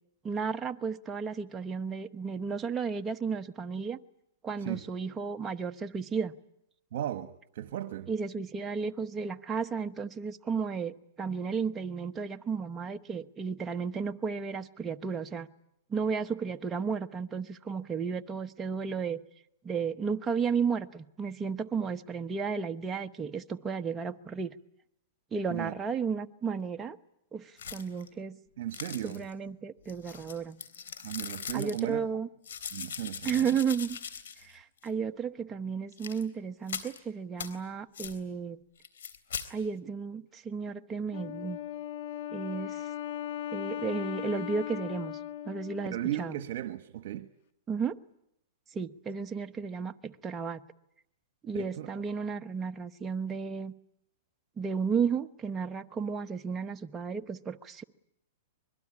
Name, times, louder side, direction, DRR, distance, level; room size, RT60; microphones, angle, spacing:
voice 1, 0.2-4.0 4.4-6.3 8.1-15.5 15.9-19.2 19.6-24.5 25.3-27.0 27.3-28.4 29.0-30.6 31.5-32.3 33.2-34.0 34.4-38.6 39.5-41.6 42.3-42.9 43.5-45.2 45.5-46.4 47.7-48.0 48.7-50.6 51.4-53.7 54.6-57.8, right 6 dB, 15° right, 1.0 m, -33 dB
voice 2, 6.9-8.1 25.5-25.7 28.6-29.2 31.0-32.0 32.7-33.5 45.9-47.3 51.5-51.9, right 12 dB, 60° right, 1.3 m, -36 dB
sound 1, 27.6-28.1 28.7-29.3 29.9-31.8 32.4-34.5 34.8-34.9 35.9-36.2 36.7-37.0 37.4-37.5 37.9-38.2 38.8-39.5, left 7 dB, 80° left, 3.5 m, -40 dB
Wind instrument woodwind instrument, 41.1-46.5, left 11 dB, 55° left, 1.7 m, -38 dB
25.0 x 21.5 x 9.8 m
hypercardioid pair, 140°, 0 cm